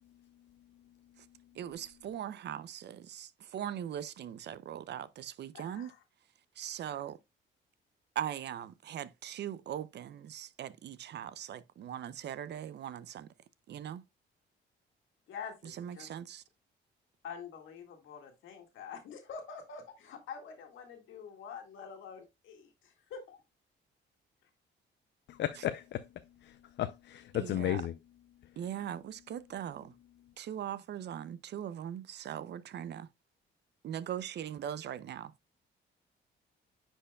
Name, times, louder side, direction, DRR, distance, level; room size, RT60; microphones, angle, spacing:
voice 1, 1.5-5.9 6.6-7.2 8.2-13.3 13.7-14.0 15.6-16.4 27.3-27.8 28.6-29.9 30.4-33.1 33.8-35.3, right 10 dB, 60° right, 0.5 m, -40 dB
voice 2, 5.5-6.0 15.3-16.1 17.2-23.4, left 6 dB, 80° left, 1.9 m, -46 dB
voice 3, 25.3-26.1 26.4-27.9, left 12 dB, 65° left, 0.5 m, -34 dB
9.8 x 4.5 x 2.2 m
cardioid pair, 90°, 20 cm